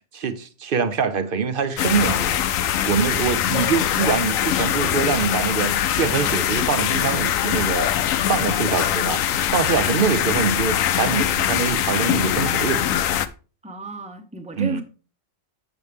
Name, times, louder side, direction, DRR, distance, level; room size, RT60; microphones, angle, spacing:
voice 1, 0.1-2.4 2.9-7.9 8.3-9.2 9.5-13.0 14.6-14.8, right 6 dB, 50° right, 0.8 m, -24 dB
sound 1, 1.8-13.3, left 10 dB, 85° left, 1.0 m, -22 dB
voice 2, 13.6-14.8, right 3 dB, 5° right, 0.7 m, -33 dB
7.8 x 6.8 x 3.4 m
omnidirectional pair, 1.4 m